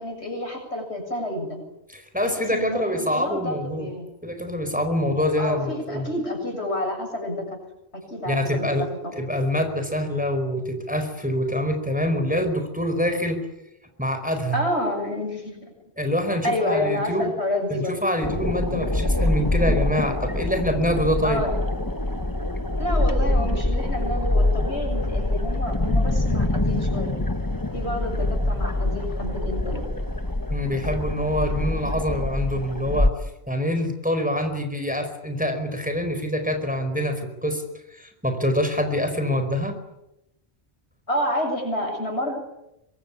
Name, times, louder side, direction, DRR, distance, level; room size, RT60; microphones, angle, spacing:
voice 1, 0.0-1.6 2.2-4.1 5.4-7.6 8.1-8.7 9.0-9.1 14.5-15.7 16.4-18.0 21.2-21.5 22.8-27.1 27.7-29.8 41.1-42.4, left 1 dB, 80° left, 3 dB, 7.9 m, -29 dB
voice 2, 1.9-3.9 4.2-6.1 8.2-8.9 9.2-13.4 14.0-14.6 16.0-17.3 17.7-21.4 30.5-33.1 33.5-37.6 37.9-39.8, equal, 5° right, 6 dB, 4.8 m, -25 dB
sound 1, 18.2-33.1, left 1 dB, 20° left, 1.5 m, -25 dB
25.0 x 22.5 x 10.0 m, 0.89 s
omnidirectional pair, 1.1 m